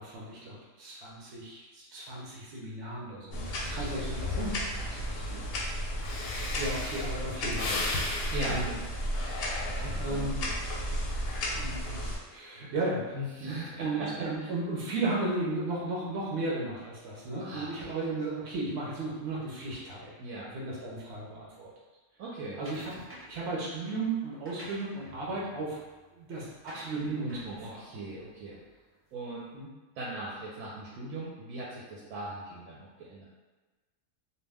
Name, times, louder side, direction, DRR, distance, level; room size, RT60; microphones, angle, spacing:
voice 1, 0.0-4.6 6.5-8.7 10.0-10.5 11.5-12.0 12.3-20.1 20.4-21.7 22.6-22.9 23.3-25.8 26.1-27.4 27.7-27.8 29.5-29.7, right 2 dB, 60° right, -5 dB, 0.8 m, -35 dB
sound 1, 3.3-12.2, equal, 60° left, 0.6 m, -34 dB
voice 2, 3.6-5.4 8.3-8.8 9.6-10.6 13.1-14.5 17.4-17.9 20.2-20.5 22.2-22.6 27.2-28.6 29.1-29.5 30.0-33.2, right 1 dB, 85° right, -6 dB, 1.0 m, -40 dB
Breathing, 5.7-5.8 6.0-10.3 10.7-11.1, left 2 dB, 85° left, 1.0 m, -36 dB
sound 2, 22.7-23.5 24.2-28.9, right 1 dB, 20° right, 0.3 m, -51 dB
2.4 x 2.2 x 3.3 m, 1.2 s
omnidirectional pair, 1.4 m